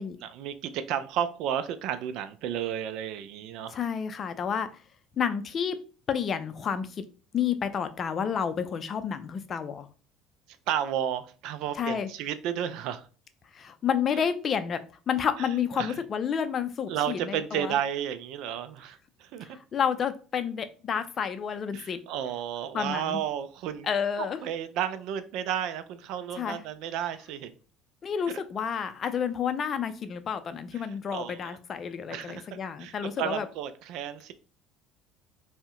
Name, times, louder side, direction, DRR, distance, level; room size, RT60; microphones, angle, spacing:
voice 1, 0.2-3.8 10.7-13.1 15.4-15.5 15.7-15.9 16.9-19.6 21.7-23.9 24.2-27.5 28.3-28.4 30.7-30.8 31.1-31.6 32.1-34.3, right 10 dB, 70° right, 12 dB, 0.3 m, -32 dB
voice 2, 3.7-4.7 5.2-5.8 6.1-7.1 7.3-9.9 11.7-12.1 13.5-14.8 15.1-17.8 19.4-22.0 22.7-23.2 23.8-24.4 26.4-26.6 28.0-33.5, left 7 dB, 45° left, 10 dB, 0.4 m, -30 dB
2.6 x 2.1 x 3.6 m, 0.38 s
supercardioid pair, 85°, 0 cm